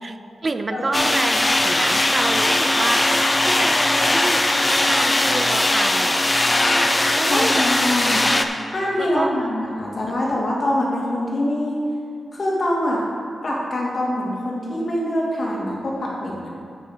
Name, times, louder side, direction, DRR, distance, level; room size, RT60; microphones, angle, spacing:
voice 1, 0.0-3.1 3.5-6.2 7.1-8.3 9.0-9.4, right 3 dB, 40° right, 8 dB, 0.4 m, -28 dB
sound 1, 0.9-8.4, left 1 dB, 20° left, 0.7 m, -19 dB
voice 2, 7.2-8.3 8.7-11.8 12.3-13.0 13.4-16.5, left 1 dB, 50° left, -4 dB, 2.5 m, -24 dB
9.6 x 8.4 x 4.0 m, 2.5 s
cardioid pair, 80°, 0 cm